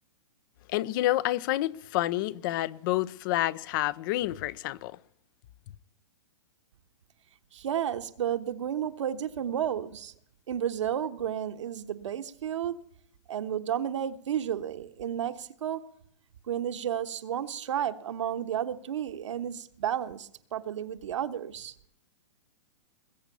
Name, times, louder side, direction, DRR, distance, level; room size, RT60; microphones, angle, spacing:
voice 1, 0.7-5.0, left 16 dB, 45° left, 0.6 m, -29 dB
voice 2, 7.5-10.1 10.5-12.7 13.3-15.8 16.5-21.7, right 10 dB, 75° right, 1.2 m, -32 dB
20.5 x 8.2 x 6.8 m
hypercardioid pair, 140°, 16 cm